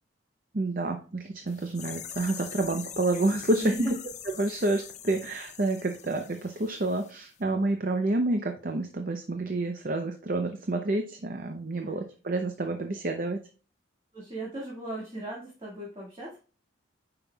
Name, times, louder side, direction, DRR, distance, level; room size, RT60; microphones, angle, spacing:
voice 1, 0.5-3.7 4.4-13.4, right 2 dB, 45° right, 5 dB, 0.6 m, -29 dB
sound 1, 1.5-7.1 7.4-7.5, left 10 dB, 35° left, 0.5 m, -43 dB
voice 2, 3.6-4.0 11.8-12.0 14.1-16.4, right 1 dB, 25° right, -5 dB, 1.8 m, -36 dB
9.1 x 5.8 x 2.3 m, 0.37 s
head